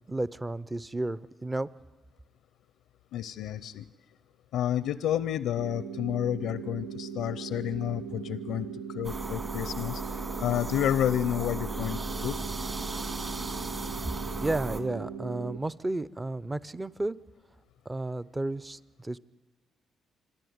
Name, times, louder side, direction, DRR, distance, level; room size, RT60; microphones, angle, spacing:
voice 1, 0.0-1.7 14.4-17.2 17.9-19.2, right 2 dB, 15° right, 19 dB, 0.6 m, -32 dB
voice 2, 3.1-3.9 4.5-12.4, left 11 dB, 85° left, 16 dB, 0.5 m, -30 dB
sound 1, 5.6-15.6, right 7 dB, 80° right, 0.8 m, -39 dB
sound 2, 9.0-14.8, right 2 dB, 35° right, 2.1 m, -36 dB
26.5 x 10.5 x 9.4 m, 1.2 s
cardioid pair, 90°, 0 cm